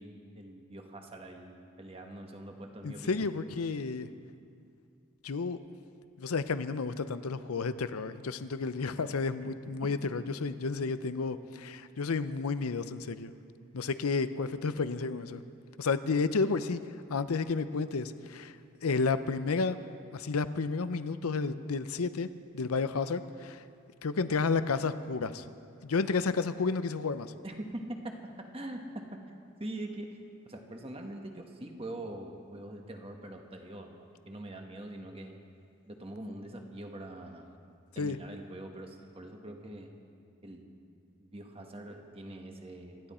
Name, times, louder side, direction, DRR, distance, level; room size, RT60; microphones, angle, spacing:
voice 1, 0.0-3.3 9.4-9.5 27.4-29.2 29.6-30.2 30.4-35.4 35.9-37.5 37.9-39.9 40.4-40.7 41.2-43.1, right 1 dB, 25° right, 3 dB, 1.3 m, -43 dB
voice 2, 2.8-4.1 5.2-5.6 6.2-13.3 13.7-15.4 15.8-16.8 17.1-18.6 18.8-19.8 20.1-22.3 22.5-23.6 24.0-25.5 25.8-27.3 38.0-38.2, left 4 dB, 90° left, 12 dB, 0.6 m, -31 dB
26.5 x 11.5 x 4.3 m, 2.4 s
head